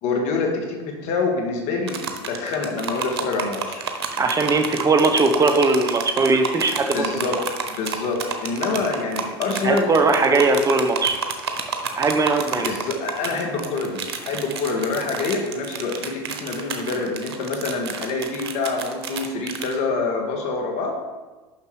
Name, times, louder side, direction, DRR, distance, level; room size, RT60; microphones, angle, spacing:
voice 1, 0.0-3.8 6.9-7.4 7.8-9.9 12.6-21.0, left 3 dB, 60° left, 2 dB, 1.8 m, -26 dB
sound 1, 1.9-19.8, right 6 dB, 90° right, 0.9 m, -30 dB
voice 2, 4.2-7.3 9.6-11.2 12.0-12.7, right 3 dB, 25° right, 6 dB, 1.0 m, -19 dB
6.7 x 5.9 x 4.8 m, 1.3 s
hypercardioid pair, 90°, 13 cm